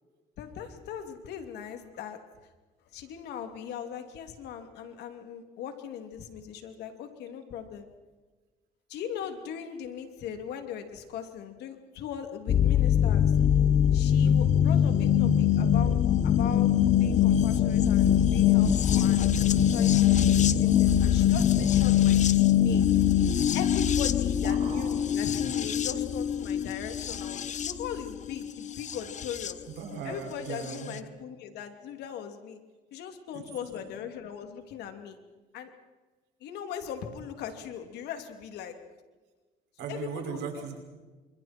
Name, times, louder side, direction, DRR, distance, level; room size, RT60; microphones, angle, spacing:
voice 1, 0.4-2.2 2.9-7.9 8.9-13.4 13.9-22.9 23.5-29.6 30.0-32.6 32.9-35.2 35.5-35.7 36.4-38.8 39.9-40.4, left 8 dB, 80° left, 6 dB, 3.0 m, -39 dB
sound 1, 12.5-29.5 30.7-30.8, left 10 dB, 45° left, 1.1 m, -23 dB
voice 2, 24.2-25.2 29.8-31.0 33.3-34.0 39.8-40.8, right 6 dB, 85° right, 2 dB, 5.9 m, -39 dB
29.0 x 26.0 x 4.5 m, 1.3 s
cardioid pair, 110°, 17 cm